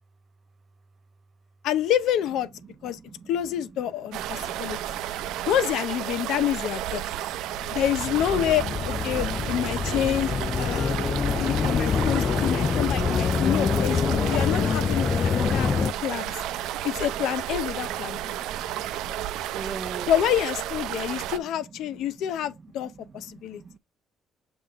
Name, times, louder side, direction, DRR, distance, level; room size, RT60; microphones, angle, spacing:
voice 1, 1.6-2.5 2.8-3.0 3.3-4.8 5.5-7.0 7.7-11.0 11.4-15.7 16.0-16.3 16.8-18.4 20.1-23.6, left 11 dB, 75° left, 0.7 m, -27 dB
voice 2, 2.6-3.3 4.3-5.5 6.2-6.4 7.0-7.8 8.3-8.5 15.1-16.2 16.5-16.7 18.1-19.3 19.5-20.1 21.0-21.3 21.9-22.3 22.8-23.8, right 5 dB, 30° right, 0.5 m, -44 dB
sound 1, 4.1-21.4, right 12 dB, 90° right, 0.6 m, -32 dB
sound 2, 7.5-15.9, left 6 dB, 35° left, 0.3 m, -26 dB
6.8 x 3.9 x 3.6 m
cardioid pair, 135°, 0 cm